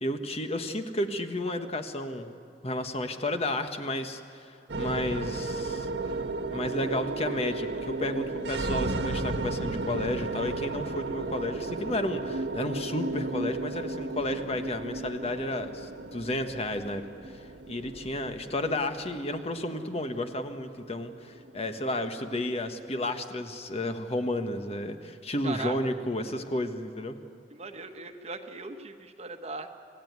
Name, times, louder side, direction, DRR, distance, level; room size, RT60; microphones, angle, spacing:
voice 1, 0.0-2.3 2.6-5.9 6.5-27.2, left 1 dB, 35° left, 7 dB, 1.3 m, -32 dB
sound 1, 4.7-23.1, right 2 dB, 85° right, 1.3 m, -34 dB
voice 2, 25.4-25.8 27.5-29.7, right 3 dB, 40° right, 7 dB, 1.3 m, -38 dB
27.0 x 16.0 x 9.6 m, 2.4 s
head